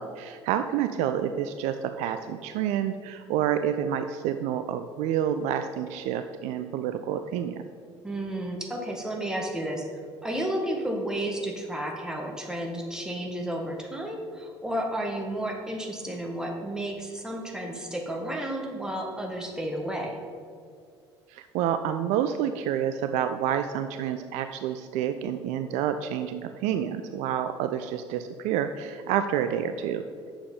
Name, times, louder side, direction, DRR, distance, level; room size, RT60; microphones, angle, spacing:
voice 1, 0.0-7.6 21.3-30.0, right 9 dB, 55° right, 9 dB, 0.4 m, -28 dB
voice 2, 8.0-9.9 10.2-20.2, right 1 dB, 5° right, 1 dB, 1.6 m, -32 dB
8.9 x 6.8 x 5.4 m, 2.3 s
figure-of-eight pair, 60°, 15 cm